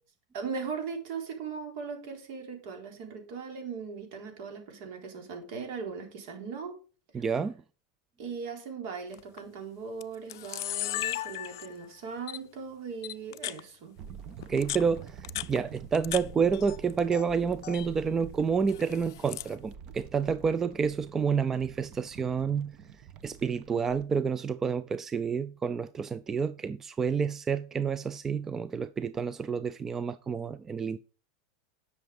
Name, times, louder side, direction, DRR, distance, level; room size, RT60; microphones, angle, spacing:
voice 1, 0.3-6.8 7.1-7.3 8.2-13.9, right 5 dB, 60° right, 4.1 m, -39 dB
voice 2, 7.1-7.5 14.5-22.8 23.2-31.0, right 6 dB, 20° right, 0.4 m, -29 dB
Camera, 9.1-9.4 10.0-10.1 10.3-11.9 12.3-12.4 13.0-13.6 14.4-16.2 16.5-17.2 17.5-17.9 18.7-19.5, left 15 dB, 75° left, 0.4 m, -36 dB
sound 1, 14.0-24.0, right 7 dB, 40° right, 1.2 m, -47 dB
10.5 x 6.5 x 5.3 m
supercardioid pair, 135°, 2 cm